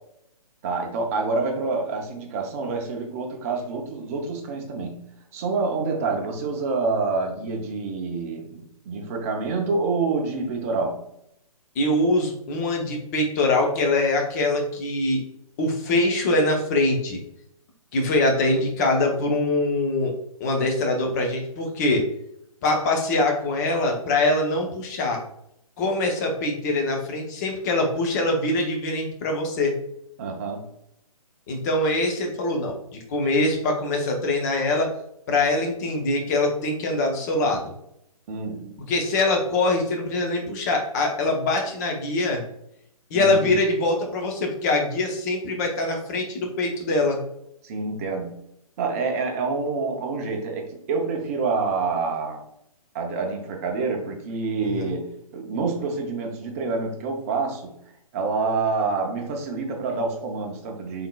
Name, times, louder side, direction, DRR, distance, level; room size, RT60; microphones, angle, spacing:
voice 1, 0.6-5.0 5.3-11.0 30.2-30.7 38.3-38.8 43.1-43.5 47.6-48.3 48.8-52.4 52.9-57.8 58.1-61.1, right 4 dB, 25° right, 3 dB, 0.6 m, -27 dB
voice 2, 11.8-15.2 15.6-17.2 17.9-20.1 20.4-22.0 22.6-25.2 25.8-29.8 31.5-32.8 33.1-34.9 35.3-37.7 38.9-42.4 43.1-47.2 54.7-54.8, left 2 dB, 30° left, 1 dB, 0.7 m, -23 dB
3.6 x 3.6 x 2.2 m, 0.76 s
figure-of-eight pair, 130°, 19 cm